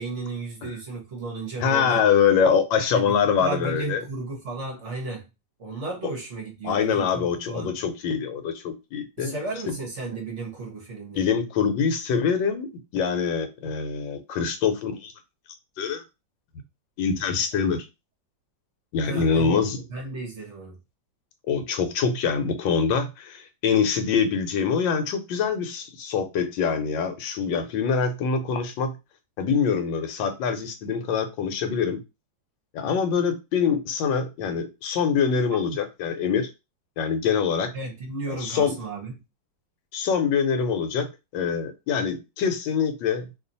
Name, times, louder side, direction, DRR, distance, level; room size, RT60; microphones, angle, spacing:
voice 1, 0.0-2.0 2.9-5.3 5.6-7.7 9.2-11.3 19.0-19.6 19.9-20.7 35.5-35.6 37.7-39.1, right 3 dB, 50° right, 1.0 m, -34 dB
voice 2, 1.6-4.0 6.6-9.3 9.7-9.8 11.1-15.1 15.8-16.0 17.0-17.8 18.9-19.8 21.5-28.9 29.4-32.0 32.7-36.5 37.0-37.7 38.3-38.7 39.9-43.2, left 6 dB, 80° left, 1.4 m, -24 dB
3.0 x 2.4 x 3.9 m
omnidirectional pair, 2.1 m